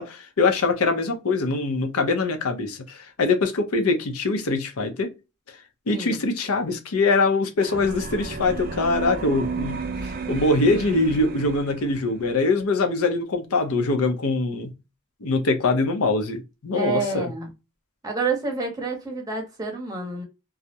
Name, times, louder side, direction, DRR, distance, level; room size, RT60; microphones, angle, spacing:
voice 1, 0.0-5.1 5.9-14.7 15.2-17.3, left 3 dB, 85° left, 0.6 m, -23 dB
voice 2, 5.9-6.2 16.7-17.5 18.0-20.2, right 4 dB, 15° right, 0.7 m, -28 dB
sound 1, 7.6-12.3, right 4 dB, 40° right, 0.4 m, -33 dB
2.3 x 2.0 x 2.7 m
head